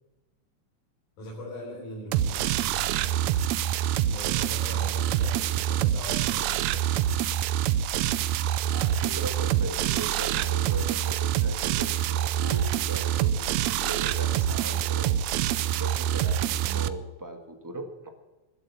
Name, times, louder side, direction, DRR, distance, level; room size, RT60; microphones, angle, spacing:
voice 1, 1.2-3.4 4.0-6.9, equal, 90° left, -4 dB, 4.9 m, -41 dB
sound 1, 2.1-16.9, right 11 dB, 75° right, 1.8 m, -26 dB
voice 2, 8.7-15.2 15.6-18.1, right 2 dB, 15° right, 5 dB, 0.8 m, -39 dB
20.5 x 8.0 x 7.2 m, 1.1 s
omnidirectional pair, 3.4 m